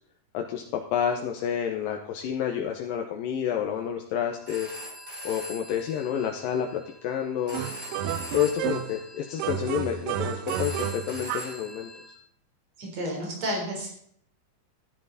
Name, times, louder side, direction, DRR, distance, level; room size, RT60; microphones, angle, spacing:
voice 1, 0.3-4.7 5.2-7.6 8.3-11.9, left 9 dB, 75° left, 2 dB, 2.6 m, -29 dB
Telephone, 4.3-12.1, equal, 20° right, 4.3 m, -42 dB
sound 1, 7.5-9.0 9.4-11.6, right 9 dB, 80° right, 2.5 m, -31 dB
voice 2, 12.8-13.9, equal, 45° right, -1 dB, 5.0 m, -31 dB
13.0 x 11.0 x 4.1 m, 0.65 s
omnidirectional pair, 4.2 m